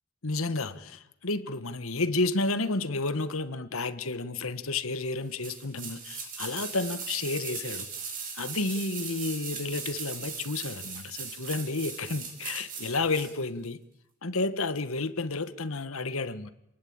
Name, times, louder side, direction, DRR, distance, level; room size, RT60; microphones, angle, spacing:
voice 1, 0.2-7.9 8.3-13.8 14.2-16.5, left 3 dB, 75° left, 1.5 m, -31 dB
sound 1, 5.4-13.3 13.6-13.7, right 6 dB, 40° right, 4.9 m, -39 dB
28.0 x 20.0 x 8.9 m
head